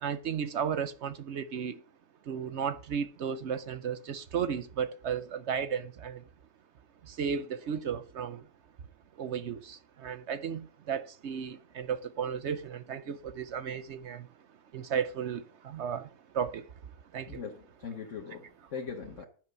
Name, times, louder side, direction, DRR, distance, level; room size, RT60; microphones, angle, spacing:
voice 1, 0.0-1.8 2.2-6.2 7.0-8.5 9.1-14.3 14.7-17.4, right 7 dB, 60° right, 0.8 m, -34 dB
voice 2, 17.3-19.3, left 6 dB, 55° left, 1.5 m, -41 dB
10.5 x 6.3 x 6.7 m
omnidirectional pair, 1.6 m